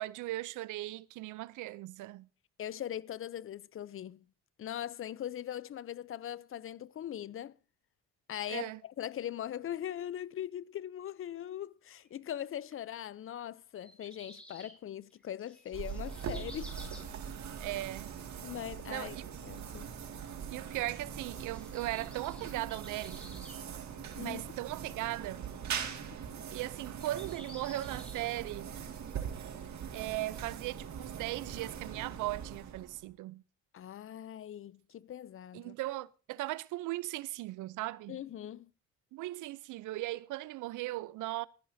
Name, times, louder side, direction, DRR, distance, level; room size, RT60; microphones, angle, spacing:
voice 1, 0.0-2.3 8.5-8.8 17.6-18.1 18.9-19.3 20.5-23.5 24.2-25.4 26.5-28.7 29.9-33.4 35.5-38.2 39.1-41.5, right 17 dB, 85° right, 0.5 m, -38 dB
voice 2, 2.6-4.3 4.6-7.5 8.3-16.8 18.4-19.2 19.4-19.9 24.2-24.4 33.7-35.7 38.1-38.7, left 11 dB, 45° left, 0.5 m, -41 dB
sound 1, 13.8-14.8 15.0-17.2 20.7-23.6 23.9-24.0 24.6-24.7 25.1-25.4 25.9-26.0 26.8-28.2, equal, 5° left, 3.9 m, -53 dB
sound 2, 15.7-33.1, right 8 dB, 65° right, 2.0 m, -42 dB
21.0 x 10.5 x 2.7 m
cardioid pair, 90°, 30 cm